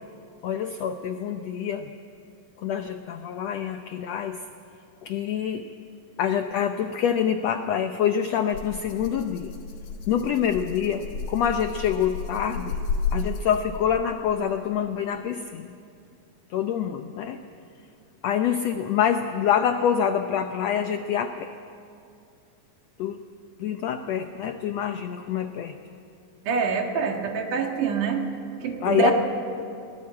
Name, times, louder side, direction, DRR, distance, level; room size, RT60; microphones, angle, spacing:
voice 1, 0.4-1.9 2.6-4.4 5.0-5.7 6.2-9.5 10.1-12.8 13.1-15.8 16.5-17.4 18.2-21.5 23.0-23.2 23.6-25.8 28.8-29.1, left 8 dB, 85° left, 7 dB, 1.4 m, -26 dB
Rattle (instrument), 8.5-13.9, left 5 dB, 60° left, 2.5 m, -32 dB
voice 2, 26.5-28.2 28.6-29.1, right 5 dB, 65° right, 3 dB, 3.1 m, -25 dB
22.0 x 19.0 x 8.6 m, 2.5 s
omnidirectional pair, 4.0 m